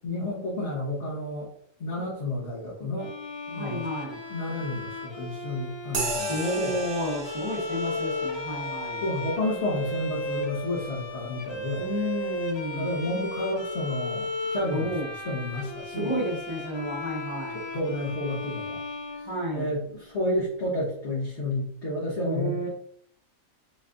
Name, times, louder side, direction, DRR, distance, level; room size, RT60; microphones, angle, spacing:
voice 1, 0.0-1.5 1.8-3.1 3.5-3.9 4.3-6.8 9.0-11.9 12.7-14.9 15.2-16.1 17.5-18.8 19.1-19.3 19.5-22.7, left 1 dB, 60° left, -5 dB, 1.3 m, -31 dB
Bowed string instrument, 3.0-20.0, left 2 dB, 35° left, 0.4 m, -35 dB
voice 2, 3.5-4.2 6.3-9.0 11.8-12.9 14.7-15.1 15.9-17.6 19.2-19.7 22.2-22.7, equal, 25° right, -4 dB, 1.0 m, -31 dB
sound 1, 5.9-13.8, right 2 dB, 55° right, 1.0 m, -38 dB
4.3 x 4.1 x 2.5 m, 0.64 s
omnidirectional pair, 1.4 m